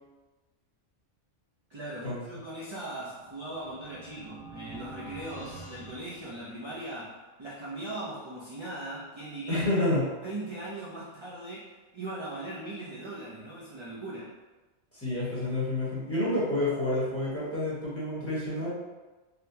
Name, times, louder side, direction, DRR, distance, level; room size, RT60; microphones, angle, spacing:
voice 1, 1.7-9.8 10.2-14.3, right 1 dB, 35° right, -8 dB, 0.4 m, -39 dB
sound 1, 2.9-6.9, right 3 dB, 90° left, 1.2 m, -47 dB
voice 2, 9.5-10.0 14.9-18.7, left 1 dB, 10° left, -10 dB, 1.0 m, -29 dB
3.9 x 2.2 x 2.7 m, 1.2 s
omnidirectional pair, 1.2 m